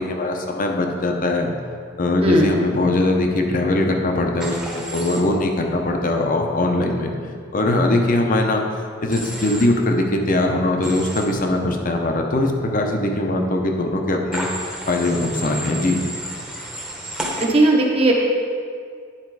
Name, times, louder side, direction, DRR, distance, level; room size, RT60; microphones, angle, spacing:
voice 1, 0.0-1.5 2.0-7.1 7.5-8.6 9.0-14.5 14.9-16.0, left 2 dB, 45° left, 3 dB, 0.8 m, -21 dB
voice 2, 2.2-2.6 17.4-18.1, right 2 dB, 30° right, -1 dB, 1.0 m, -17 dB
Human voice / Train, 4.4-5.2 9.1-9.7 10.8-11.2 14.3-17.5, right 1 dB, 5° right, 1.0 m, -31 dB
9.8 x 4.3 x 4.8 m, 2.1 s
head